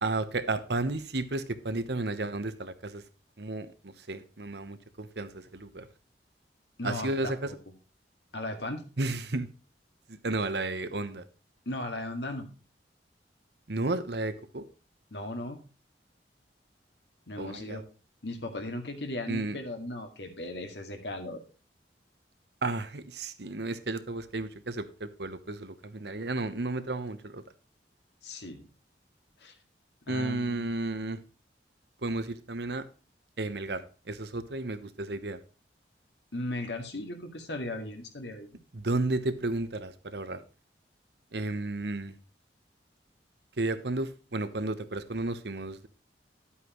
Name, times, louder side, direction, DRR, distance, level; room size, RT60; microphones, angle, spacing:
voice 1, 0.0-3.0 3.4-5.9 6.8-7.5 9.0-9.5 10.1-11.2 13.7-14.7 17.4-17.8 19.3-19.6 22.6-27.4 30.1-31.2 32.0-32.8 33.4-35.4 38.7-40.4 41.3-42.2 43.6-45.9, right 2 dB, 65° right, 11 dB, 1.0 m, -33 dB
voice 2, 6.8-7.6 8.3-8.8 11.7-12.5 15.1-15.6 17.3-17.8 18.2-21.4 28.2-28.7 29.4-29.5 30.0-30.7 36.3-38.6, left 1 dB, 75° left, 5 dB, 2.1 m, -37 dB
12.0 x 8.4 x 3.1 m, 0.36 s
head